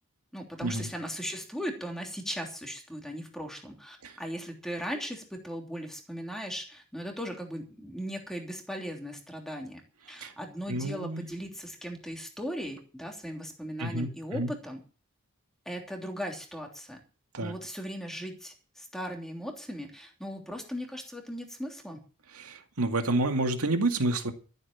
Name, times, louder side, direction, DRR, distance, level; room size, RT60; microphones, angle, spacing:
voice 1, 0.3-9.8 10.1-14.8 15.6-17.0 17.4-22.0, equal, ahead, 1 dB, 3.1 m, -38 dB
voice 2, 10.7-11.2 13.8-14.5 17.3-17.5 22.3-24.3, right 2 dB, 80° right, 5 dB, 2.2 m, -29 dB
14.0 x 8.0 x 7.3 m, 0.38 s
head